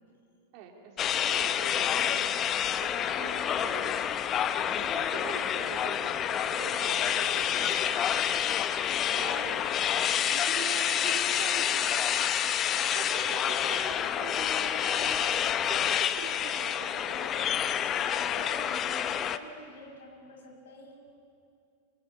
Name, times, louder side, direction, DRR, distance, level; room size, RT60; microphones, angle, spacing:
voice 1, 0.5-2.3 2.8-2.9 3.2-4.0 4.8-8.1 8.5-9.9 10.3-12.3 12.9-15.3 15.7-17.5, right 6 dB, 45° right, 1 dB, 3.7 m, -43 dB
sound 1, 1.0-19.4, left 9 dB, 30° left, 1.0 m, -28 dB
voice 2, 3.0-3.4 17.8-18.0 18.3-21.1, left 2 dB, 60° left, 2 dB, 5.6 m, -46 dB
26.5 x 25.5 x 8.6 m, 2.5 s
figure-of-eight pair, 90°, 0 cm